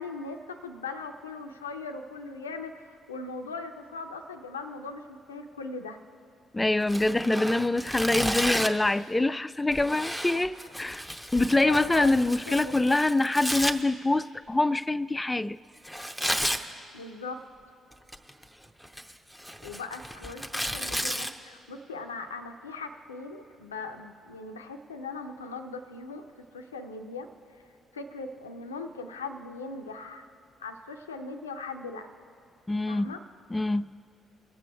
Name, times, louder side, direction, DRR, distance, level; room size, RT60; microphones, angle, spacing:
voice 1, 0.0-6.0 11.6-13.2 16.9-17.4 19.6-26.2 26.5-27.6 27.9-30.3 30.6-32.1 32.9-33.2, left 3 dB, 85° left, 0.5 m, -39 dB
voice 2, 6.5-11.1 11.3-15.6 32.7-33.1 33.5-33.9, left 2 dB, 15° left, 0.3 m, -25 dB
Tearing, 6.8-8.9 9.7-13.7 15.9-16.6 17.9-18.4 18.8-21.3, equal, 5° right, 0.7 m, -32 dB
22.5 x 7.5 x 4.6 m
figure-of-eight pair, 40°, 0 cm